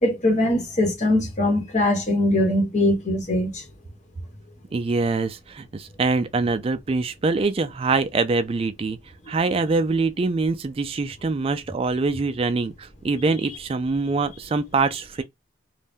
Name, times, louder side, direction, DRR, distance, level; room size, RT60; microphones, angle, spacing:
voice 1, 0.0-3.6, left 1 dB, 35° left, 1.0 m, -21 dB
voice 2, 4.7-9.0 9.3-15.2, right 3 dB, 30° right, 0.3 m, -24 dB
2.6 x 2.1 x 3.4 m
head